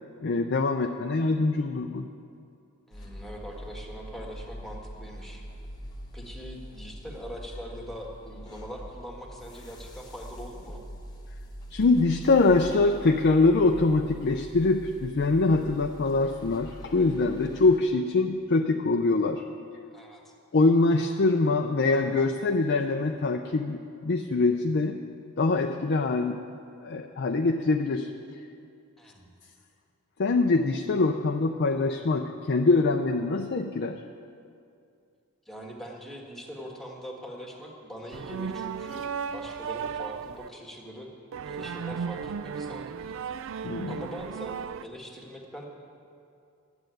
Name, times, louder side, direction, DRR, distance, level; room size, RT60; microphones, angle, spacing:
voice 1, 0.2-2.1 11.7-19.4 20.5-25.0 25.4-26.4 26.8-28.1 30.2-34.0 43.6-44.0, left 3 dB, 50° left, 4 dB, 0.5 m, -24 dB
sound 1, 2.9-17.8, equal, 20° left, 1.1 m, -43 dB
voice 2, 2.9-5.5 6.1-10.8 19.9-20.3 29.0-29.3 35.4-41.1 41.4-43.2 43.9-45.7, equal, ahead, 0 dB, 1.6 m, -42 dB
sound 2, 38.1-40.5 41.3-44.8, right 6 dB, 60° right, 0.3 m, -35 dB
12.0 x 7.9 x 9.1 m, 2.5 s
head